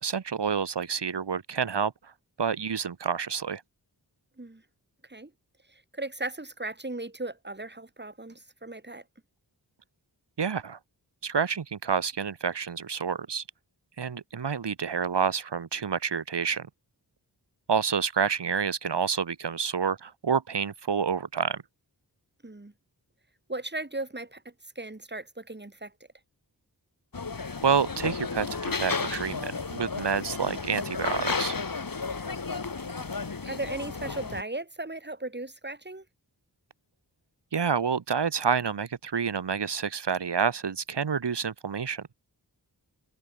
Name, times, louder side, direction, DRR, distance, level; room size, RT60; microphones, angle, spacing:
voice 1, 0.0-2.1 2.4-3.6 10.4-10.8 11.2-13.4 14.0-16.7 17.7-21.6 27.6-31.6 37.5-42.1, right 6 dB, 85° right, 2.4 m, -28 dB
voice 2, 5.7-9.0 22.4-22.7 23.5-25.9 33.5-36.0, right 2 dB, 25° right, 5.7 m, -37 dB
sound 1, 27.1-34.4, left 4 dB, 55° left, 3.9 m, -33 dB
wide cardioid pair, 80°, 40 cm